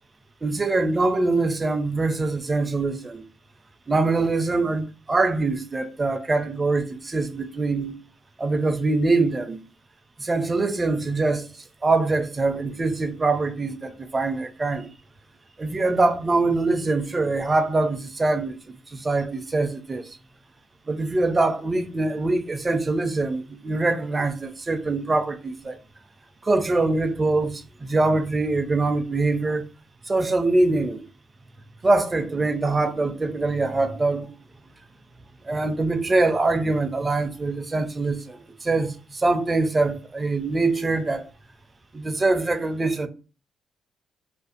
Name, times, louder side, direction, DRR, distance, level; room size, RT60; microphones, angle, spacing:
voice 1, 0.4-3.2 3.9-8.0 8.4-9.6 10.2-14.9 15.6-20.1 20.9-25.8 26.4-29.7 30.1-31.0 31.8-34.3 35.4-41.3 41.9-43.1, right 3 dB, 25° right, 0.4 m, -23 dB
2.5 x 2.4 x 2.4 m
cardioid pair, 90°, 0 cm